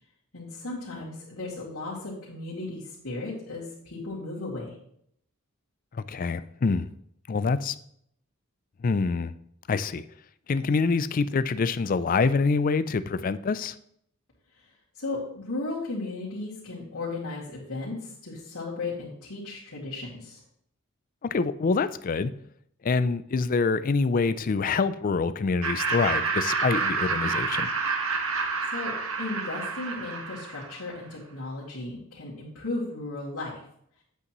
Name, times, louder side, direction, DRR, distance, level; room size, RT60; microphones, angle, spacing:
voice 1, 0.3-4.8 14.5-14.6 14.9-20.4 28.7-28.9 29.2-33.5, left 2 dB, 85° left, -9 dB, 2.5 m, -35 dB
voice 2, 5.9-6.9 7.3-7.8 8.8-9.3 9.7-10.0 10.5-13.8 21.2-22.3 22.8-27.7, left 4 dB, 40° left, 14 dB, 0.4 m, -26 dB
Laughter, 25.6-30.9, right 4 dB, 80° right, 1.2 m, -29 dB
8.3 x 8.0 x 3.0 m, 0.69 s
head